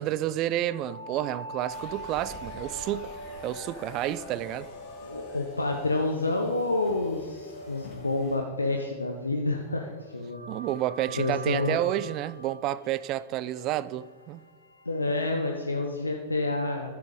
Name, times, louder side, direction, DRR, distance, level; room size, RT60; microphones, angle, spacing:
voice 1, 0.0-3.2 3.4-4.7 10.5-14.4, right 13 dB, 40° right, 0.4 m, -30 dB
sound 1, 0.6-9.4 10.3-15.1, right 1 dB, 90° right, 1.1 m, -44 dB
sound 2, 1.7-8.4, left 2 dB, 30° left, 2.2 m, -47 dB
voice 2, 5.0-10.4 11.2-11.8 14.8-17.0, left 2 dB, 80° left, 0.8 m, -29 dB
12.0 x 6.8 x 5.3 m
figure-of-eight pair, 90°, 0 cm